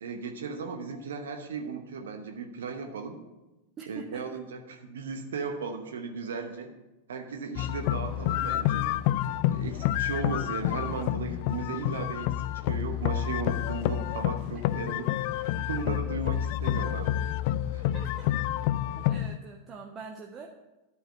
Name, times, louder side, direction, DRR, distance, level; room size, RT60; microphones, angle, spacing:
voice 1, 0.0-3.2 3.9-6.7 7.1-8.9 9.5-15.1 15.6-17.3 17.7-17.8, right 4 dB, 65° right, 4 dB, 1.0 m, -36 dB
voice 2, 3.8-4.4 17.9-18.3 19.0-20.5, right 4 dB, 25° right, 1 dB, 0.9 m, -44 dB
sound 1, 7.6-19.4, left 12 dB, 45° left, 0.3 m, -29 dB
11.5 x 4.8 x 7.5 m, 1.0 s
figure-of-eight pair, 90°, 0 cm